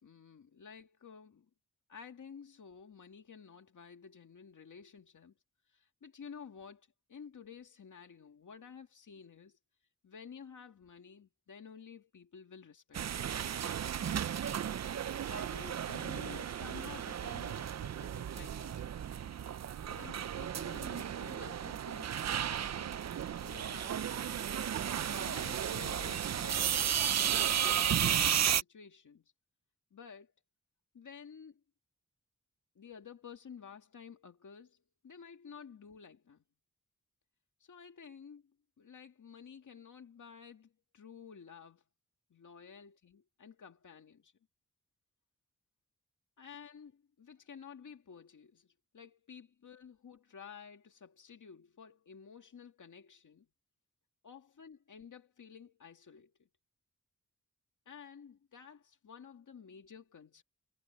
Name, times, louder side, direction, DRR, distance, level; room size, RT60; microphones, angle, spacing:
voice 1, 0.0-1.5 1.9-5.3 5.7-9.6 10.0-13.3 15.3-19.1 19.8-22.9 23.4-24.4 25.1-29.3 29.9-30.3 30.9-31.6 32.8-36.4 37.6-38.4 38.8-41.8 42.3-44.3 46.4-53.5 54.2-56.5 57.9-60.4, left 6 dB, 80° left, 2.2 m, -52 dB
sound 1, 12.9-28.6, right 9 dB, 60° right, 0.5 m, -34 dB
wide cardioid pair, 95°, 30 cm